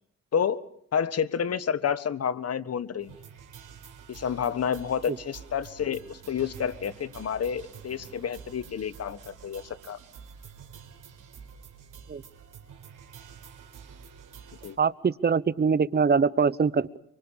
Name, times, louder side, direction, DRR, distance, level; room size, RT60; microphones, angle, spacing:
voice 1, 0.3-0.6 0.9-3.1 4.1-10.0 14.6-14.8, left 7 dB, 45° left, 16 dB, 1.4 m, -29 dB
sound 1, 3.0-14.8, right 7 dB, 60° right, 4.3 m, -48 dB
voice 2, 14.8-17.0, right 5 dB, 30° right, 18 dB, 1.0 m, -23 dB
25.0 x 24.0 x 7.0 m, 0.71 s
cardioid pair, 80°, 34 cm